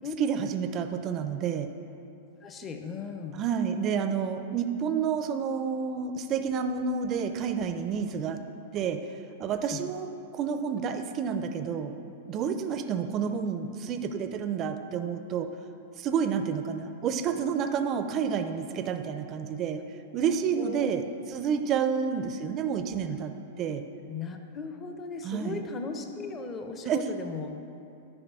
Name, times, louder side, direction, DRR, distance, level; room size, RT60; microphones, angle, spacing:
voice 1, 0.2-1.7 3.3-8.4 8.7-9.0 9.4-11.9 12.3-15.5 16.0-19.8 20.1-23.3 23.6-23.8 25.2-25.6 26.9-27.1, right 7 dB, 35° right, 8 dB, 0.5 m, -29 dB
voice 2, 2.4-3.4 9.7-9.9 20.6-20.9 21.6-22.1 24.1-27.5, left 4 dB, 25° left, 6 dB, 0.8 m, -37 dB
9.8 x 4.9 x 4.8 m, 2.8 s
hypercardioid pair, 115°, 0 cm